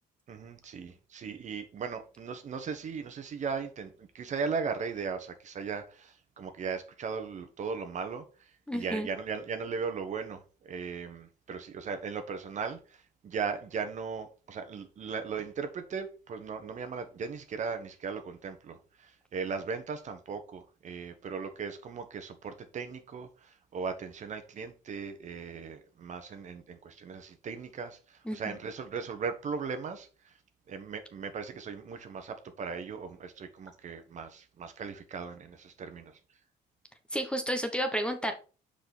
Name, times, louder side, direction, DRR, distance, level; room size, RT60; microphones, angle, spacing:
voice 1, 0.3-8.2 8.7-30.3 30.7-36.2, right 5 dB, 45° right, 1.2 m, -38 dB
voice 2, 8.7-9.1 28.2-28.6 37.1-38.3, equal, 5° left, 1.1 m, -31 dB
5.9 x 5.0 x 4.3 m
cardioid pair, 110°, 17 cm